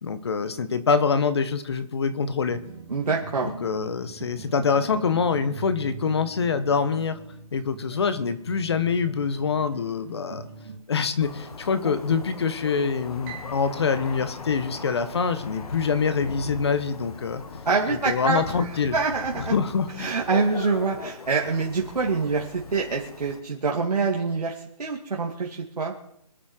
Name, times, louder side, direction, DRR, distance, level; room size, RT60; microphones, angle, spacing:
voice 1, 0.0-2.6 3.6-7.2 7.5-10.5 10.9-17.4 18.0-18.9 19.5-20.1, left 5 dB, 45° left, 11 dB, 1.4 m, -25 dB
sound 1, 2.1-10.8, right 5 dB, 40° right, 3.0 m, -42 dB
voice 2, 2.9-3.5 17.6-19.5 20.0-25.9, right 4 dB, 85° right, -1 dB, 2.5 m, -26 dB
Thunder, 11.2-23.4, left 4 dB, 70° left, 1.8 m, -39 dB
Piano, 13.2-15.5, right 8 dB, 15° right, 2.0 m, -46 dB
26.0 x 8.8 x 4.6 m, 0.73 s
hypercardioid pair, 175°, 20 cm